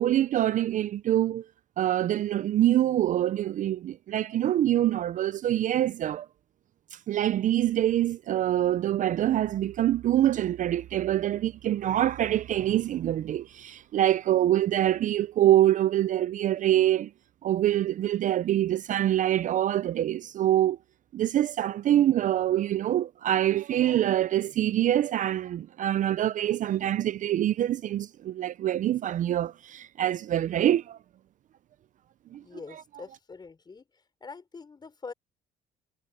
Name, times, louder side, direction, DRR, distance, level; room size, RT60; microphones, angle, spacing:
voice 1, 0.0-1.4 1.8-6.3 6.9-17.1 17.4-20.8 21.1-31.0 32.3-32.4 32.7-32.8, right 12 dB, 50° right, 0.5 m, -25 dB
voice 2, 32.3-33.8 34.2-35.1, left 4 dB, 25° left, 4.2 m, -44 dB
cardioid pair, 110°, 17 cm